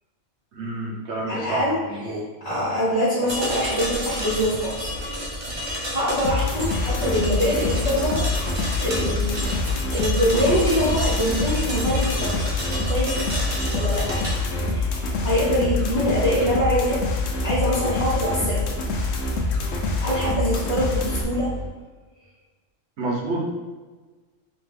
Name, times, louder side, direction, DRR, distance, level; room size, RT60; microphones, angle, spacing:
voice 1, 0.5-2.3 23.0-23.4, right 2 dB, 65° right, -1 dB, 1.0 m, -29 dB
voice 2, 1.3-4.9 5.5-12.4 12.9-13.2 13.7-18.7 20.0-21.5, equal, 35° left, -11 dB, 0.9 m, -25 dB
sound 1, 3.3-14.3, equal, 25° right, 0.7 m, -31 dB
sound 2, 6.2-21.2, left 3 dB, 90° left, 1.0 m, -26 dB
sound 3, 6.6-21.7, left 1 dB, 60° left, 0.3 m, -33 dB
3.6 x 2.8 x 3.3 m, 1.3 s
omnidirectional pair, 1.3 m